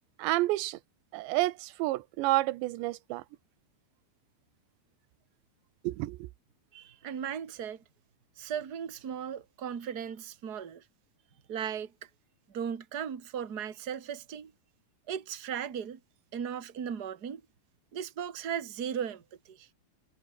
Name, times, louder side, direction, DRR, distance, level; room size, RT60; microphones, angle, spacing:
voice 1, 0.2-0.8 1.1-3.2 5.8-6.3, right 18 dB, 85° right, 3.2 m, -29 dB
voice 2, 6.7-7.8 8.4-10.8 11.5-11.9 12.5-14.5 15.1-16.0 16.3-17.4 17.9-19.7, right 8 dB, 35° right, 1.5 m, -37 dB
omnidirectional pair, 5.0 m